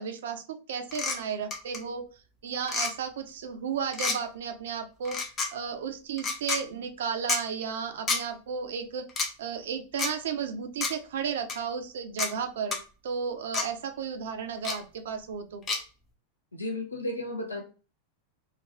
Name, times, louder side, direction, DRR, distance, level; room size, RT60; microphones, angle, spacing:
voice 1, 0.0-2.0 2.4-5.2 5.5-9.1 9.4-15.6, right 6 dB, 60° right, 7 dB, 0.5 m, -34 dB
sound 1, 0.9-1.2 1.5-1.8 2.6-2.9 3.9-4.2 5.0-5.5 6.2-6.6 7.3-7.4 8.1-8.2 9.1-9.3 10.0-10.1 10.8-10.9 11.5-11.6 12.2-12.3 12.7-12.8 13.5-13.7 14.6-14.8 15.7-15.8, left 4 dB, 25° left, 0.7 m, -29 dB
voice 2, 16.5-17.6, left 1 dB, 80° left, 2 dB, 0.7 m, -33 dB
2.9 x 2.5 x 2.9 m, 0.35 s
figure-of-eight pair, 90°, 0 cm